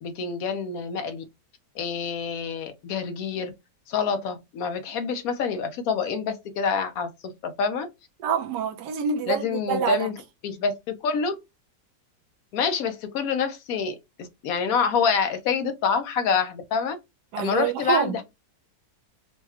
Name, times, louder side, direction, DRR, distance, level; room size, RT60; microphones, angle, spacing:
voice 1, 0.0-1.2 1.7-3.5 3.9-7.9 9.3-10.1 10.4-11.4 12.5-17.0 17.4-18.2, left 5 dB, 65° left, 1.0 m, -27 dB
voice 2, 8.2-10.1 17.3-18.2, right 7 dB, 75° right, 1.3 m, -26 dB
4.7 x 2.2 x 2.9 m
omnidirectional pair, 1.9 m